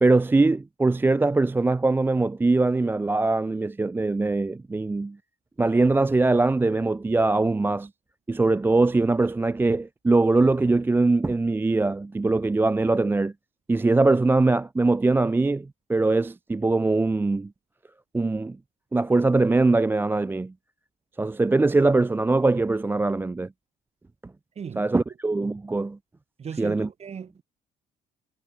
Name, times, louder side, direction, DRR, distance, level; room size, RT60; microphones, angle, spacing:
voice 1, 0.0-5.2 5.6-7.9 8.3-13.3 13.7-17.5 18.1-18.6 18.9-20.5 21.2-23.5 24.8-26.0 26.6-26.9, right 3 dB, 10° right, 0.5 m, -22 dB
voice 2, 24.6-24.9 26.4-27.4, right 7 dB, 40° right, 5.3 m, -37 dB
cardioid pair, 110°, 17 cm